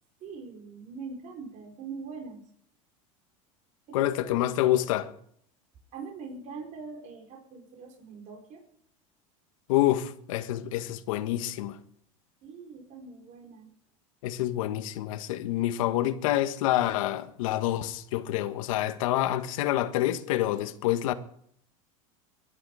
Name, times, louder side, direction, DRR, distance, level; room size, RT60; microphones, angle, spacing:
voice 1, 0.2-2.4 3.9-4.3 5.9-8.6 12.4-13.7, right 4 dB, 50° right, 5.3 m, -42 dB
voice 2, 3.9-5.1 9.7-11.8 14.2-21.1, left 14 dB, 80° left, 1.5 m, -27 dB
23.0 x 11.0 x 5.1 m
supercardioid pair, 110°, 17 cm